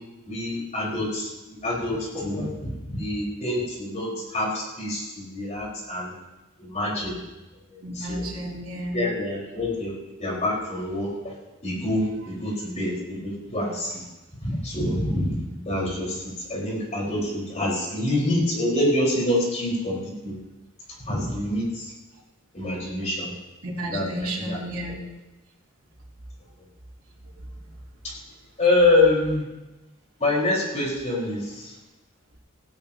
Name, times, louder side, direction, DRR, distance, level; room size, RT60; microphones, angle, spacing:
voice 1, 0.3-6.1 6.6-7.2 7.7-8.3 8.9-9.9 10.2-11.3 11.6-14.0 14.4-15.3 15.7-20.3 21.1-21.9 22.5-23.3 23.8-24.6 28.0-28.1 28.6-29.4 30.2-31.7, left 1 dB, 35° left, -4 dB, 5.1 m, -26 dB
voice 2, 7.8-9.1 15.5-15.6 23.6-25.0, right 1 dB, 70° right, -5 dB, 3.3 m, -32 dB
16.5 x 16.0 x 3.0 m, 1.0 s
head